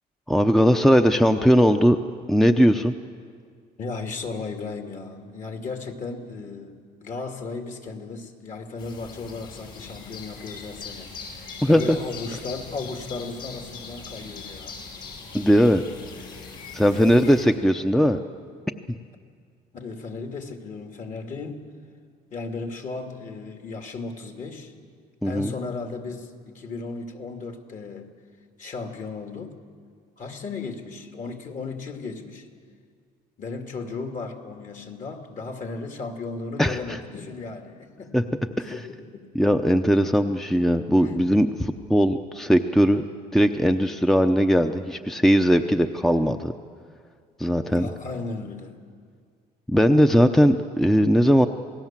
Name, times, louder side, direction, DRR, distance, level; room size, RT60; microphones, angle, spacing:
voice 1, 0.3-2.0 2.3-2.9 11.6-12.0 15.3-15.8 16.7-18.2 25.2-25.5 36.6-36.8 38.1-38.2 38.6-38.8 39.3-43.0 43.3-46.5 47.4-47.9 49.7-51.5, equal, ahead, 7 dB, 0.7 m, -19 dB
voice 2, 3.8-14.8 16.9-17.0 19.7-21.7 22.3-24.7 25.2-28.1 28.6-29.6 30.2-32.5 33.4-38.2 38.5-39.3 41.0-41.3 47.7-48.8, left 4 dB, 50° left, 5 dB, 2.5 m, -35 dB
sound 1, 8.8-17.5, left 5 dB, 65° left, 5.9 m, -41 dB
27.5 x 18.5 x 7.5 m, 2.1 s
cardioid pair, 110°, 17 cm